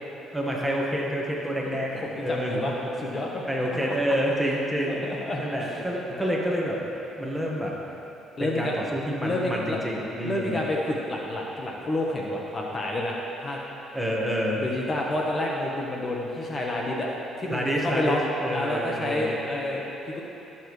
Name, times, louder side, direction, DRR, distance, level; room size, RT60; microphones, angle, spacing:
voice 1, 0.3-2.6 3.5-4.9 5.4-6.8 7.2-7.7 8.4-10.6 13.9-14.6 17.5-19.4, equal, 5° right, -3 dB, 1.6 m, -28 dB
voice 2, 1.7-2.7 3.0-3.4 3.7-4.2 4.9-5.8 6.1-6.3 8.4-8.7 9.2-9.8 10.2-13.6 14.6-17.1 17.4-18.2 18.5-20.2, left 1 dB, 35° left, -2 dB, 1.2 m, -29 dB
16.5 x 7.3 x 3.3 m, 3.0 s
supercardioid pair, 80°, 0 cm